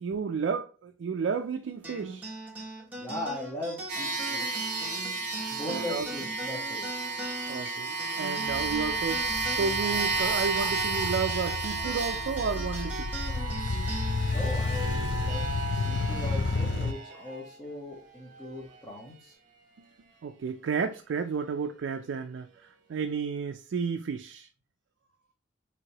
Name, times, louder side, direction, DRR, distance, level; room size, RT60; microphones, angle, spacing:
voice 1, 0.0-2.3 5.6-6.1 7.5-13.3 19.8-19.9 20.2-24.5, right 5 dB, 75° right, 0.3 m, -32 dB
sound 1, 1.8-16.6, right 1 dB, 10° right, 1.2 m, -41 dB
voice 2, 2.9-4.7 5.5-6.9 14.3-19.3, left 1 dB, 20° left, 1.1 m, -39 dB
sound 2, 3.9-17.5, right 3 dB, 45° right, 1.1 m, -33 dB
sound 3, 8.5-16.9, left 3 dB, 65° left, 0.4 m, -32 dB
4.7 x 3.4 x 2.8 m
head